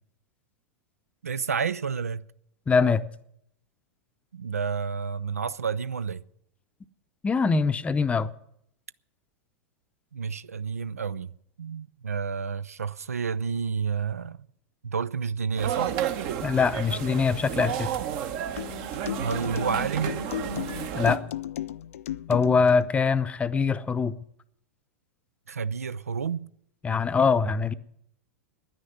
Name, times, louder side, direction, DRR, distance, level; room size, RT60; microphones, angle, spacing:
voice 1, 1.2-2.2 4.3-6.2 10.1-11.3 11.6-14.5 14.8-16.0 19.2-20.2 25.5-26.5, right 6 dB, 85° right, 0.4 m, -30 dB
voice 2, 2.7-3.0 7.2-8.3 16.4-17.9 20.9-21.2 22.3-24.2 26.8-27.7, left 5 dB, 15° left, 0.6 m, -23 dB
sound 1, 15.6-21.2, right 10 dB, 50° right, 1.1 m, -32 dB
sound 2, 18.6-22.8, left 11 dB, 70° left, 0.4 m, -35 dB
10.5 x 9.7 x 9.2 m
hypercardioid pair, 100°, 8 cm